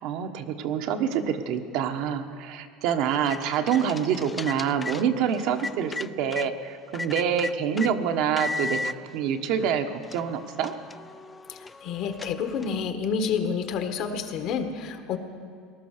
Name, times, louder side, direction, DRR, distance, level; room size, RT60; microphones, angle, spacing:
voice 1, 0.0-10.7, right 8 dB, 65° right, 6 dB, 1.2 m, -26 dB
sound 1, 3.0-6.5 6.9-7.9 8.4-8.9 9.6-9.7 10.0-12.9, left 3 dB, 15° left, 0.4 m, -36 dB
voice 2, 11.5-15.2, left 6 dB, 55° left, 7 dB, 1.5 m, -29 dB
19.0 x 11.5 x 6.6 m, 2.2 s
supercardioid pair, 130°, 0 cm